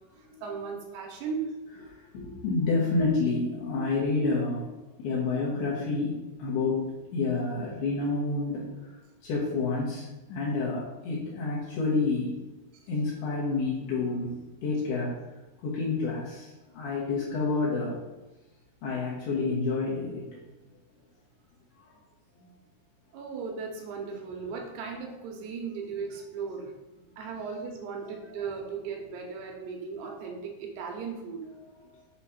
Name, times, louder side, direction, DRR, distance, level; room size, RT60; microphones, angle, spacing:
voice 1, 0.4-1.5 23.1-26.7 27.2-31.4, right 5 dB, 85° right, 1 dB, 2.9 m, -36 dB
voice 2, 1.9-4.7 5.0-6.8 7.1-12.4 12.9-15.1 15.6-18.0 18.8-20.4 21.8-21.9 22.4-22.5 31.6-32.0, left 3 dB, 75° left, -6 dB, 2.9 m, -29 dB
7.3 x 3.0 x 5.7 m, 1.0 s
omnidirectional pair, 4.8 m